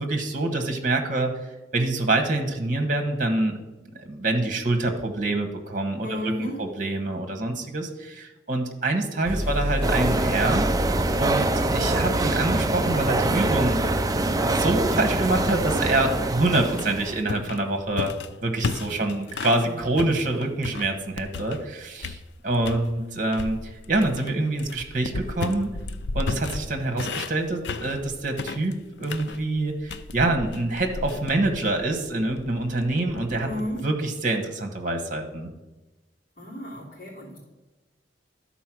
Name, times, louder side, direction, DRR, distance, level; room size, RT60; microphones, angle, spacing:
voice 1, 0.0-1.4 1.7-3.6 4.0-6.3 6.6-10.7 11.2-13.8 14.1-18.1 18.4-25.7 26.1-33.5 33.8-35.5, right 2 dB, 45° right, 4 dB, 1.3 m, -26 dB
voice 2, 6.0-6.6 18.9-19.2 19.5-19.7 33.4-33.9 36.4-37.4, left 1 dB, 50° left, -5 dB, 2.9 m, -34 dB
sound 1, 9.2-12.8, equal, 25° left, 3.3 m, -31 dB
sound 2, 9.8-17.2, right 2 dB, 20° right, 0.4 m, -24 dB
sound 3, 15.6-19.6 20.0-21.7 22.0-22.9 23.3-33.8, left 3 dB, 75° left, 0.5 m, -35 dB
12.5 x 4.2 x 6.1 m, 1.1 s
head